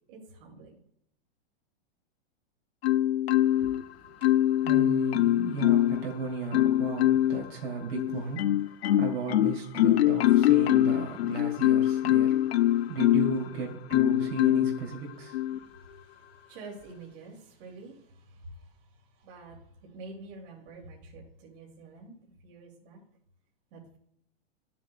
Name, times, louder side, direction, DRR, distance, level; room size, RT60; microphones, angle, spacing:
voice 1, 0.1-0.8 12.6-12.9 15.5-19.6 19.9-22.1 22.4-23.0 23.7-24.0, right 3 dB, 55° right, -2 dB, 2.6 m, -48 dB
Marimba xylophone, 2.8-3.8 4.2-6.0 6.5-7.4 7.9-13.4 13.9-14.8 15.3-15.6, left 13 dB, 90° left, 0.5 m, -23 dB
voice 2, 3.6-12.5 12.9-15.4, right 4 dB, 75° right, -1 dB, 2.8 m, -36 dB
12.0 x 7.3 x 2.3 m, 0.69 s
hypercardioid pair, 130°, 30 cm